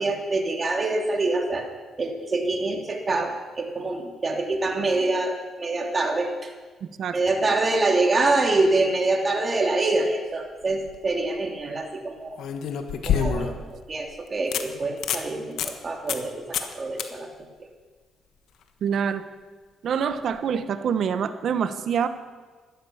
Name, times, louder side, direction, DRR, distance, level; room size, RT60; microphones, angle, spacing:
voice 1, 0.0-1.7 2.0-6.5 7.1-12.4 13.0-13.6 13.9-17.3 17.6-17.7, right 2 dB, 30° right, 2 dB, 2.9 m, -25 dB
voice 2, 6.8-7.2 18.8-19.2 19.8-22.1, right 7 dB, 65° right, 11 dB, 1.1 m, -26 dB
Winding up a disposable Camera, 10.6-11.0 12.4-13.7 14.1-14.2 14.5-14.6 15.0-15.3 15.6-15.7 16.1-16.3 16.5-16.7 17.0-17.1 20.2-20.3, left 7 dB, 75° left, 1.3 m, -27 dB
13.5 x 13.0 x 7.1 m, 1.4 s
cardioid pair, 90°, 0 cm